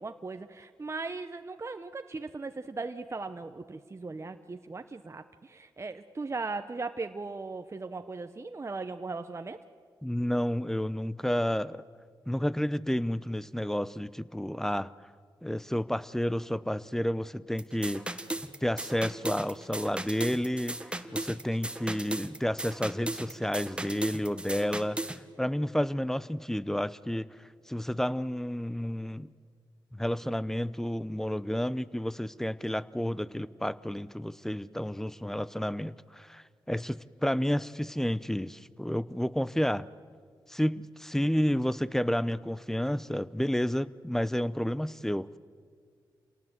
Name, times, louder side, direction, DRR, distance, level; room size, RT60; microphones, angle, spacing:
voice 1, 0.0-9.6, right 3 dB, 35° right, 7 dB, 0.9 m, -38 dB
voice 2, 10.0-11.8 12.3-14.9 15.4-18.0 18.6-20.8 21.1-27.3 27.7-29.3 29.9-39.9 40.5-45.4, equal, 5° left, 17 dB, 0.8 m, -31 dB
sound 1, 17.6-25.2, right 1 dB, 10° right, 1.5 m, -36 dB
28.0 x 18.5 x 8.0 m, 2.1 s
cardioid pair, 60°, 9 cm